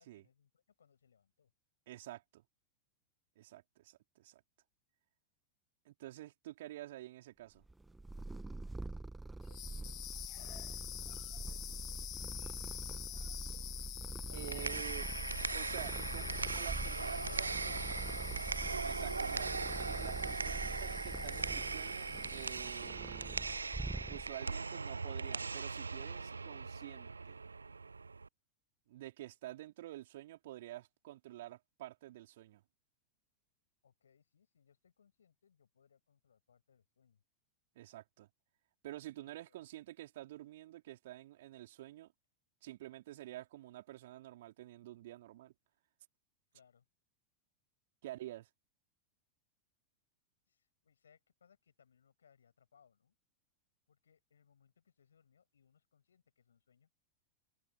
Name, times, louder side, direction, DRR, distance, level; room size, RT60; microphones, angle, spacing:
voice 1, 0.0-1.5 8.7-9.0 9.5-10.0 10.3-12.9 33.8-37.2 39.2-39.6 46.5-46.9 50.5-53.2 53.9-56.9, left 7 dB, 70° left, 7.9 m, -69 dB
voice 2, 1.9-2.4 3.4-4.4 5.8-7.6 14.3-17.7 18.8-19.5 19.8-23.4 24.1-27.4 28.9-32.6 37.7-38.3 38.8-42.1 42.6-45.5 48.0-48.5, right 15 dB, 55° right, 4.4 m, -49 dB
Purr, 7.7-24.5, right 2 dB, 5° right, 1.6 m, -44 dB
sound 1, 9.4-23.0, left 17 dB, 35° left, 1.9 m, -47 dB
sound 2, 14.3-28.3, right 4 dB, 75° right, 0.4 m, -40 dB
figure-of-eight pair, 90°, 0 cm